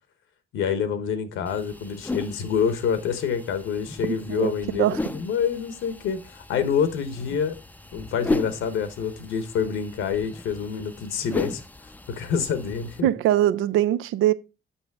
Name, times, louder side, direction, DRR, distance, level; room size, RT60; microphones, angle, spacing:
voice 1, 0.5-7.6 7.9-11.6 12.1-13.1, left 7 dB, 85° left, 1.0 m, -27 dB
sound 1, 1.5-13.0, left 2 dB, 10° left, 0.4 m, -36 dB
voice 2, 4.3-5.0 13.0-14.3, right 13 dB, 85° right, 0.5 m, -22 dB
7.1 x 5.7 x 3.5 m
cardioid pair, 90°, 20 cm